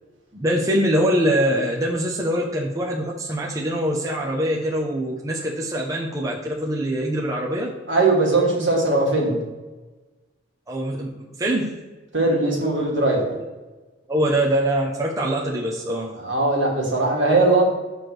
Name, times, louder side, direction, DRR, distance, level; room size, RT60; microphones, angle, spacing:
voice 1, 0.3-7.7 10.7-11.1 11.4-11.7 14.1-16.1, equal, 15° right, -3 dB, 0.6 m, -23 dB
voice 2, 7.9-9.4 12.1-13.2 16.2-17.6, right 2 dB, 65° right, -2 dB, 1.8 m, -19 dB
6.9 x 3.2 x 6.1 m, 1.2 s
head